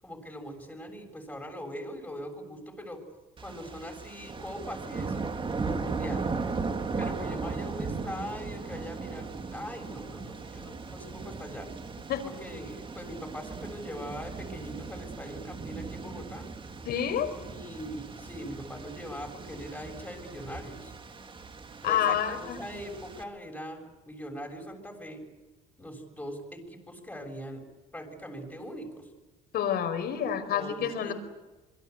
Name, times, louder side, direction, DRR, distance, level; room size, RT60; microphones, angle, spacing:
voice 1, 0.0-3.0 3.4-5.3 5.6-6.3 7.0-11.7 12.2-16.5 17.3-20.9 21.8-25.2 25.8-27.6 27.9-29.1 30.2-31.1, equal, 10° left, 2 dB, 7.1 m, -41 dB
sound 1, 3.4-23.2, right 4 dB, 30° right, 3.0 m, -37 dB
voice 2, 16.9-17.3 21.8-22.6 29.5-31.1, left 9 dB, 70° left, 8 dB, 5.3 m, -28 dB
27.0 x 22.5 x 8.3 m, 1.2 s
cardioid pair, 110°, 17 cm